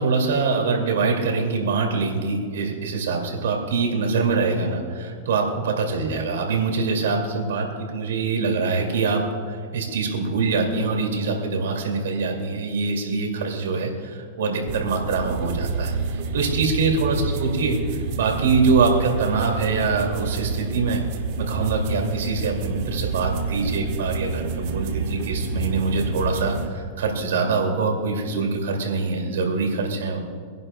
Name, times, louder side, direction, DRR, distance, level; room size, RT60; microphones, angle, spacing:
voice 1, 0.0-21.0 21.4-30.2, right 4 dB, 85° right, 1 dB, 2.2 m, -24 dB
sound 1, 14.7-26.7, right 4 dB, 60° right, 1.3 m, -28 dB
25.0 x 11.0 x 2.2 m, 2.1 s
supercardioid pair, 135°, 0 cm